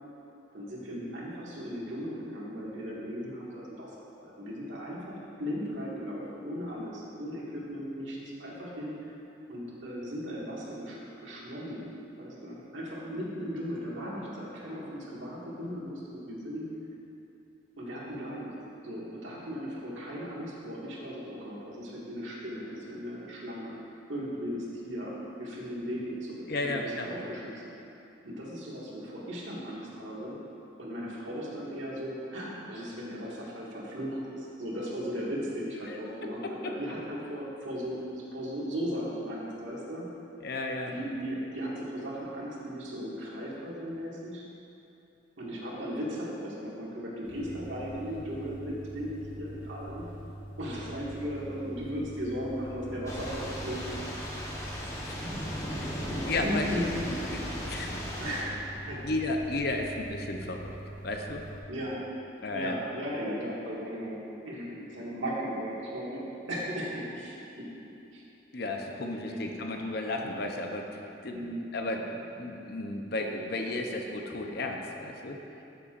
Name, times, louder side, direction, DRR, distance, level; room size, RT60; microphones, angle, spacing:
voice 1, 0.5-3.9 4.2-9.1 9.5-11.9 12.2-16.7 17.8-18.5 18.8-23.8 24.1-25.1 25.4-27.7 28.2-30.4 30.8-40.0 40.9-44.4 45.4-50.1 50.6-53.8 54.1-54.4 56.1-59.0 61.7-62.0 62.5-66.2 66.5-67.7 68.1-68.2 69.3-69.4 71.3-71.6, equal, 75° right, -6 dB, 1.9 m, -37 dB
voice 2, 26.5-27.1 35.8-36.7 40.4-40.9 55.1-55.3 55.7-56.7 57.3-57.4 57.7-58.3 59.0-60.7 61.0-61.5 62.4-62.8 68.5-71.4 71.7-75.4, left 2 dB, 55° left, 2 dB, 0.7 m, -34 dB
sound 1, 47.2-61.6, right 1 dB, 85° left, 1.9 m, -44 dB
Thunder / Rain, 53.1-58.4, equal, 15° left, 1.0 m, -36 dB
13.5 x 7.0 x 2.5 m, 2.8 s
head